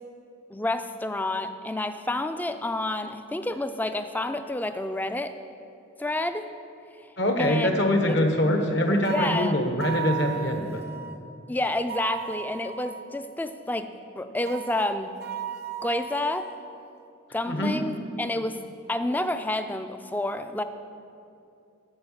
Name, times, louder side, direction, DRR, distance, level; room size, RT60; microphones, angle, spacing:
voice 1, 0.5-5.3 6.0-6.5 7.4-7.7 9.1-9.5 11.5-13.9 14.2-15.1 15.8-16.5 17.3-18.6 18.9-20.6, left 1 dB, 10° left, 9 dB, 0.3 m, -29 dB
voice 2, 7.2-10.8 17.5-17.7, left 1 dB, 55° left, 4 dB, 1.1 m, -24 dB
sound 1, 9.0-11.2 11.9-13.1 14.5-16.6, right 9 dB, 50° right, 0.5 m, -36 dB
8.7 x 7.5 x 7.2 m, 2.6 s
head